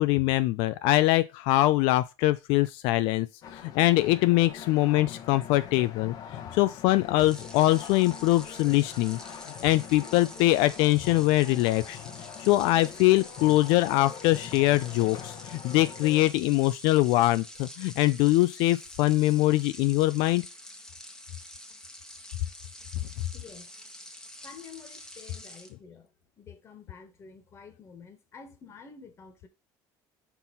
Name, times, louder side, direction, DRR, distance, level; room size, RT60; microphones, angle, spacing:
voice 1, 0.0-3.3 3.5-9.2 9.6-12.0 12.4-20.4, left 17 dB, 80° left, 0.4 m, -23 dB
sound 1, 3.4-16.3, left 8 dB, 45° left, 0.9 m, -43 dB
sound 2, 7.1-25.7, left 1 dB, 5° left, 1.0 m, -47 dB
voice 2, 23.3-23.7 24.4-29.5, left 5 dB, 30° left, 1.4 m, -49 dB
5.6 x 4.6 x 5.2 m
cardioid pair, 150°, 9 cm